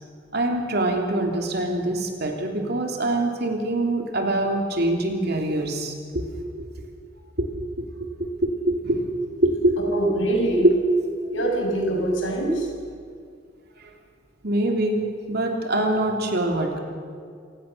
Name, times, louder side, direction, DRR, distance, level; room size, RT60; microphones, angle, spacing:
voice 1, 0.3-6.7 7.4-9.1 9.4-9.8 10.6-10.8 14.4-15.0 15.3-16.8, right 1 dB, 55° right, 2 dB, 3.1 m, -24 dB
voice 2, 9.8-10.7 11.3-12.7, right 1 dB, 80° left, 1 dB, 5.9 m, -24 dB
27.5 x 17.0 x 6.8 m, 2.2 s
head